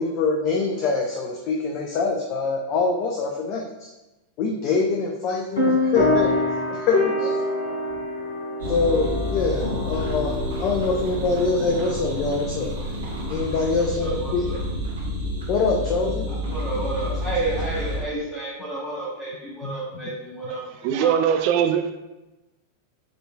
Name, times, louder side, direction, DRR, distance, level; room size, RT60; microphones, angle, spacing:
voice 1, 0.0-3.9 4.4-6.3 6.7-7.4 8.7-12.7 13.3-14.4 15.5-16.2 19.6-19.7, left 4 dB, 40° left, 1 dB, 0.5 m, -24 dB
sound 1, 5.6-13.7, left 2 dB, 65° left, 1.3 m, -27 dB
sound 2, 8.6-18.0, equal, 65° right, 1.2 m, -30 dB
voice 2, 14.0-14.6 16.3-20.6 21.0-21.2, right 2 dB, 15° left, -9 dB, 1.5 m, -31 dB
voice 3, 20.5-21.9, right 8 dB, 45° right, 7 dB, 0.4 m, -22 dB
7.6 x 3.0 x 2.3 m, 1.0 s
figure-of-eight pair, 90°, 0 cm